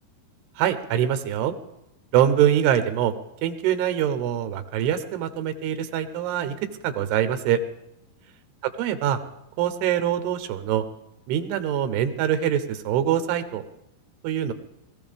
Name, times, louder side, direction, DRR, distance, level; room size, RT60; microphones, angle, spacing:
voice 1, 0.6-1.5 2.1-3.1 3.4-6.5 6.8-7.6 8.6-9.2 9.6-10.8 11.3-13.6 14.2-14.5, right 10 dB, 80° right, 10 dB, 3.0 m, -24 dB
21.0 x 14.5 x 3.5 m, 0.87 s
omnidirectional pair, 4.8 m